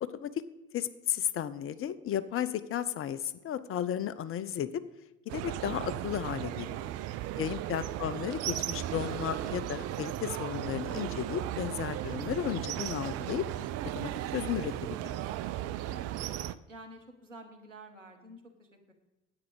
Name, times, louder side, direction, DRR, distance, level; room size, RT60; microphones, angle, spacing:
voice 1, 0.0-0.3 0.7-4.7 5.3-6.9 7.4-13.5 13.9-14.7 15.0-15.2, left 10 dB, 35° left, 14 dB, 0.6 m, -34 dB
sound 1, 5.3-16.6, right 13 dB, 45° right, 0.5 m, -36 dB
voice 2, 15.9-18.9, right 1 dB, 90° right, 3 dB, 1.1 m, -51 dB
9.6 x 8.2 x 5.0 m, 1.0 s
figure-of-eight pair, 50°, 36 cm